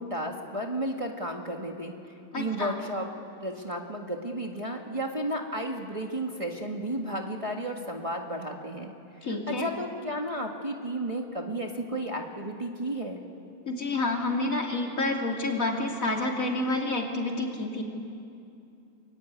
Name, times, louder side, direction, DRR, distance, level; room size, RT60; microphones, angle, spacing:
voice 1, 0.0-1.9 2.4-3.1 3.4-13.2, right 1 dB, 20° right, 1 dB, 1.8 m, -33 dB
voice 2, 2.3-2.8 9.2-9.7 13.6-17.8, left 2 dB, 65° left, 0 dB, 3.3 m, -29 dB
24.0 x 23.0 x 9.7 m, 2.6 s
omnidirectional pair, 1.5 m